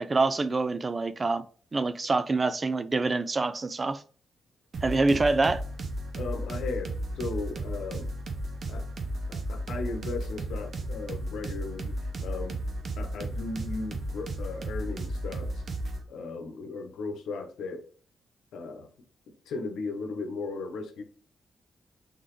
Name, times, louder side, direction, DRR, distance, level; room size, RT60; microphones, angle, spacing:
voice 1, 0.0-1.4 1.7-4.0 4.8-5.6, right 3 dB, 35° right, 0.5 m, -26 dB
sound 1, 4.7-16.0, right 1 dB, 60° right, 0.8 m, -34 dB
voice 2, 6.1-8.1 8.7-8.9 9.3-12.6 13.0-15.6 16.1-17.8 18.5-18.9 19.5-21.0, left 3 dB, 85° left, 0.9 m, -36 dB
3.9 x 3.6 x 3.2 m
supercardioid pair, 55°, 0 cm